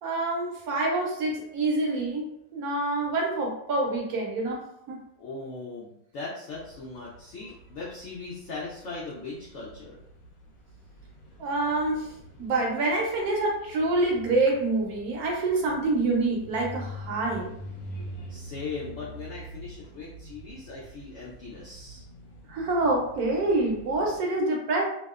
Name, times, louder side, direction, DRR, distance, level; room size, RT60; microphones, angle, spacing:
voice 1, 0.0-2.3 2.5-5.0 11.4-17.5 22.5-24.8, right 2 dB, 70° right, -1 dB, 1.0 m, -26 dB
voice 2, 5.2-10.0 18.3-22.0, left 3 dB, 80° left, -4 dB, 0.6 m, -39 dB
sound 1, 6.5-24.2, equal, 65° left, 1.0 m, -45 dB
2.7 x 2.0 x 2.3 m, 0.76 s
omnidirectional pair, 1.8 m